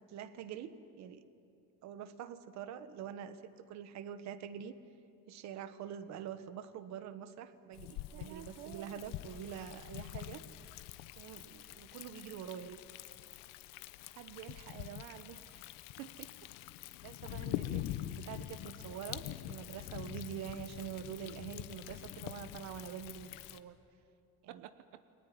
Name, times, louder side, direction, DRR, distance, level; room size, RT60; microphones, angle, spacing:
voice 1, 0.1-1.2 1.8-4.8 5.3-10.4 11.2-12.8 17.0-23.8 24.4-24.6, right 9 dB, 55° right, 12 dB, 1.4 m, -45 dB
Thunder, 7.7-23.6, left 14 dB, 80° left, 1.1 m, -45 dB
voice 2, 8.1-9.0 14.2-15.7 16.0-16.5 24.5-25.0, right 13 dB, 85° right, 11 dB, 1.0 m, -50 dB
29.5 x 20.5 x 9.6 m, 2.6 s
cardioid pair, 150°, 32 cm